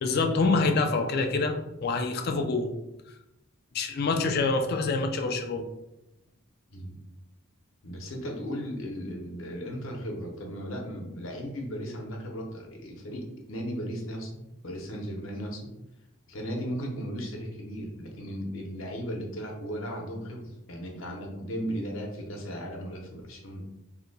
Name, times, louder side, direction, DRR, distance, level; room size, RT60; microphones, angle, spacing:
voice 1, 0.0-2.7 3.7-5.6, left 3 dB, 45° left, 5 dB, 0.3 m, -26 dB
voice 2, 6.7-7.0 7.8-15.7 16.3-23.7, equal, 70° left, 1 dB, 0.7 m, -36 dB
2.8 x 2.1 x 3.9 m, 0.91 s
head